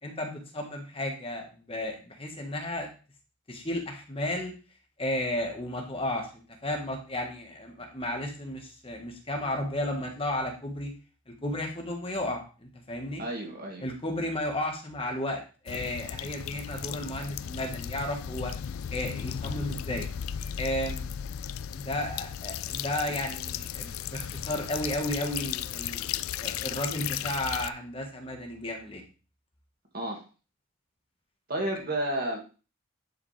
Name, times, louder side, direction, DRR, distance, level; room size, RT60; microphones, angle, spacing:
voice 1, 0.0-2.9 3.5-4.5 5.0-10.9 11.3-13.2 13.8-18.5 18.9-20.1 20.6-21.1 21.7-29.0, left 1 dB, 25° left, 2 dB, 1.5 m, -33 dB
voice 2, 13.2-13.8 29.9-30.2 31.5-32.4, right 1 dB, 45° right, 0 dB, 2.1 m, -31 dB
sound 1, 15.7-27.7, left 9 dB, 85° left, 0.4 m, -35 dB
11.0 x 5.0 x 3.3 m, 0.34 s
head